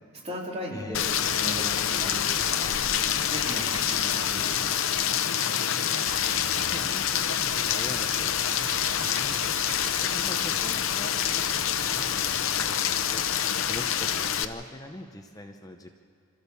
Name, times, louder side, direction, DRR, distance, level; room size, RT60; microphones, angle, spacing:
voice 1, 0.2-5.2, equal, 30° right, -2 dB, 3.3 m, -38 dB
Rain, 0.9-14.4, left 9 dB, 85° left, 0.8 m, -26 dB
sound 1, 2.3-4.0 5.7-6.6 7.1-10.2 11.0-11.2 12.0-12.1, right 9 dB, 85° right, 0.8 m, -45 dB
voice 2, 6.0-8.7 9.0-9.5 9.8-13.2 13.6-15.9, left 1 dB, 20° left, 4 dB, 0.7 m, -43 dB
27.0 x 14.0 x 7.0 m, 2.5 s
head